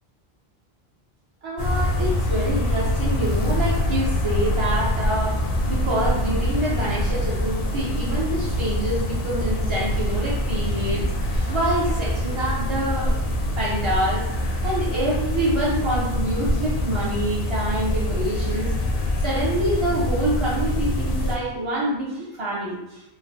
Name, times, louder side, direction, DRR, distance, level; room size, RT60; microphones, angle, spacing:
voice 1, 1.4-13.2 13.6-18.7 19.2-23.0, right 1 dB, 40° right, -7 dB, 0.5 m, -26 dB
sound 1, 1.6-21.4, left 1 dB, 70° left, 0.7 m, -24 dB
3.1 x 2.1 x 2.7 m, 0.95 s
omnidirectional pair, 1.0 m